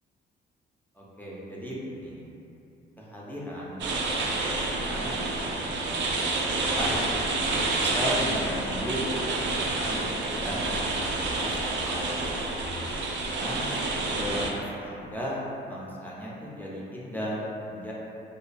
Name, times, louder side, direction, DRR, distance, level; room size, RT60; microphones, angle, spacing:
voice 1, 1.0-2.2 3.0-3.9 4.1-7.0 7.6-10.9 11.3-12.2 13.1-13.7 14.1-17.9, equal, 10° left, -6 dB, 0.4 m, -36 dB
sound 1, 3.8-14.5, right 2 dB, 65° right, 0.4 m, -28 dB
2.5 x 2.2 x 2.4 m, 2.8 s
cardioid pair, 90°, 20 cm